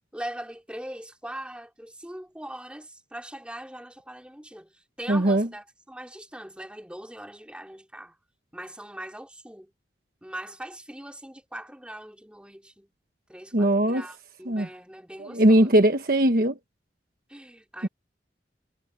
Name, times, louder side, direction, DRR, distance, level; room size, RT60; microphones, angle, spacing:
voice 1, 0.1-8.2 8.5-9.7 10.2-12.9 13.3-15.8 17.3-17.9, right 1 dB, 5° right, 4.2 m, -41 dB
voice 2, 5.1-5.5 13.5-14.0 14.5-14.7 15.2-16.6 17.8-17.9, right 1 dB, 55° right, 1.3 m, -20 dB
head